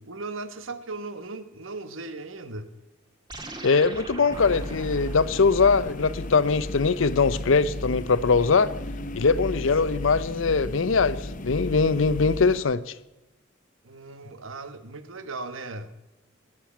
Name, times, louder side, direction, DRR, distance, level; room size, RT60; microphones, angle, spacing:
voice 1, 0.0-2.7 13.8-16.0, right 3 dB, 85° right, 1.1 m, -37 dB
sound 1, 3.3-8.0, right 2 dB, 20° right, 1.6 m, -44 dB
voice 2, 3.6-8.7 9.1-12.9, left 4 dB, 85° left, 0.7 m, -22 dB
sound 2, 4.3-12.6, left 1 dB, 40° left, 0.9 m, -34 dB
20.0 x 7.7 x 7.3 m
head